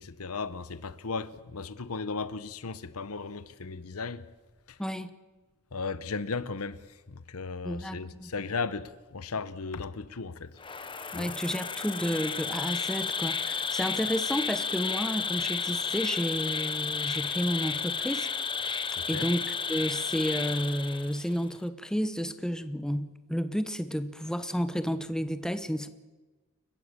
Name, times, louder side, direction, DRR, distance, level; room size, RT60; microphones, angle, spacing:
voice 1, 0.0-4.2 4.7-4.8 5.7-10.6 11.1-11.3 19.0-19.3, left 4 dB, 70° left, 0.9 m, -36 dB
voice 2, 4.8-5.1 7.6-8.3 11.1-18.3 18.6-25.9, equal, 5° left, 1.0 m, -31 dB
Insect, 10.6-21.4, left 5 dB, 20° left, 1.0 m, -32 dB
29.5 x 15.0 x 6.9 m
head